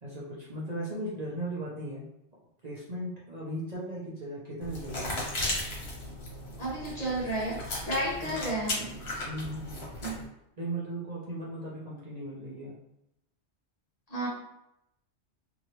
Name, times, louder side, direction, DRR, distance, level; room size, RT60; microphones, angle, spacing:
voice 1, 0.0-2.0 2.6-5.3 8.2-8.5 9.3-9.8 10.6-12.7, right 1 dB, 45° right, -6 dB, 0.7 m, -37 dB
sound 1, 4.6-10.2, left 1 dB, 70° left, 1.2 m, -36 dB
voice 2, 6.6-9.0 10.0-10.2 14.1-14.3, right 1 dB, 40° left, -6 dB, 1.0 m, -32 dB
2.9 x 2.7 x 2.9 m, 0.83 s
omnidirectional pair, 1.1 m